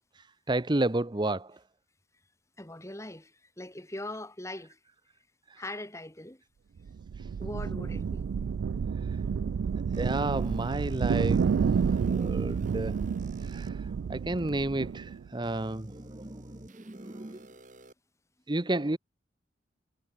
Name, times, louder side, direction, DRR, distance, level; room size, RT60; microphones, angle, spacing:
voice 1, 0.2-1.6 5.5-5.6 9.9-11.5 12.1-13.0 13.4-17.5 18.5-19.0, right 2 dB, 25° right, 0.9 m, -32 dB
voice 2, 2.6-4.8 5.6-6.4 7.4-8.2 12.1-12.6, left 1 dB, 15° left, 2.8 m, -41 dB
Thunder Roll, 6.8-15.3, right 6 dB, 75° right, 0.3 m, -30 dB
sound 1, 9.9-13.7 14.4-14.5 15.4-17.9, right 1 dB, 45° right, 5.1 m, -52 dB
head